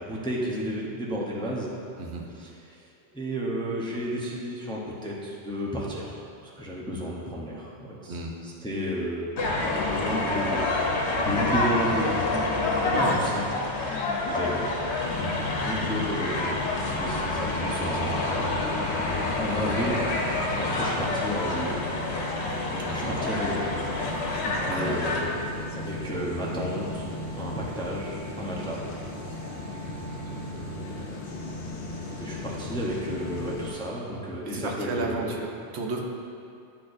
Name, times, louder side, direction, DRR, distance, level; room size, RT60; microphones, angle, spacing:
voice 1, 0.0-1.7 2.3-2.5 2.8-2.9 3.1-6.2 6.4-9.3 9.6-10.7 11.2-13.4 14.2-14.7 15.6-16.6 16.9-18.3 19.4-20.0 20.6-21.8 22.8-23.7 24.4-25.4 25.7-27.1 27.3-28.9 30.3-31.3 32.2-35.3, equal, 5° left, -4 dB, 0.6 m, -32 dB
sound 1, 9.4-25.2, left 2 dB, 75° left, 1.1 m, -28 dB
voice 2, 12.8-13.2 22.8-23.1 24.7-24.9 34.5-36.0, right 3 dB, 80° right, 0 dB, 1.0 m, -32 dB
sound 2, 15.0-33.7, left 2 dB, 60° left, 0.9 m, -36 dB
10.5 x 4.2 x 2.6 m, 2.5 s
omnidirectional pair, 1.1 m